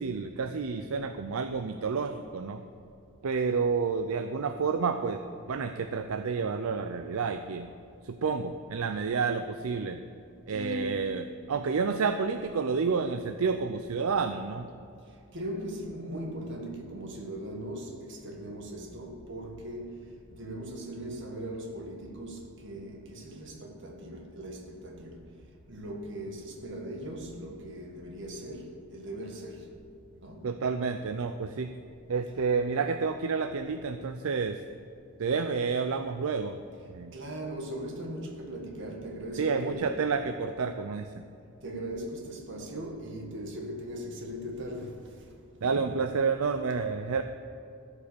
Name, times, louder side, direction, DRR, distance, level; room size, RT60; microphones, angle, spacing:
voice 1, 0.0-2.6 3.2-5.2 5.5-7.7 8.0-10.0 10.5-14.7 30.4-31.7 32.1-34.6 35.2-36.6 36.9-37.1 39.4-41.2 45.6-47.2, right 5 dB, 75° right, 0.5 m, -30 dB
voice 2, 10.5-11.1 15.3-19.9 20.3-25.2 25.7-29.6 30.2-30.4 37.1-40.0 41.6-45.0 45.6-45.9, equal, 55° right, 1.7 m, -39 dB
14.0 x 5.5 x 6.9 m
head